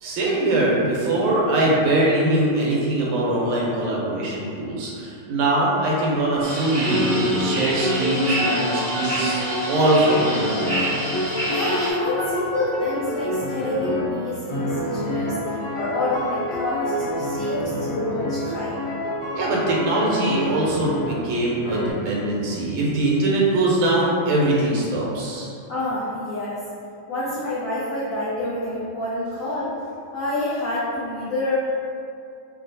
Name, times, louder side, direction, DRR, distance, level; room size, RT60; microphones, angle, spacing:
voice 1, 0.0-9.4 9.7-10.9 19.3-25.6, right 2 dB, 80° right, -4 dB, 1.5 m, -22 dB
sound 1, 6.4-6.6 6.8-21.3 21.6-21.9, left 1 dB, 50° left, 0.8 m, -27 dB
sound 2, 6.4-11.9, right 1 dB, 40° right, 0.8 m, -28 dB
voice 2, 11.5-15.4 15.7-18.7 25.7-26.6 27.1-29.7 30.1-31.6, left 2 dB, 80° left, -11 dB, 0.7 m, -27 dB
3.0 x 2.8 x 2.6 m, 2.4 s
omnidirectional pair, 2.3 m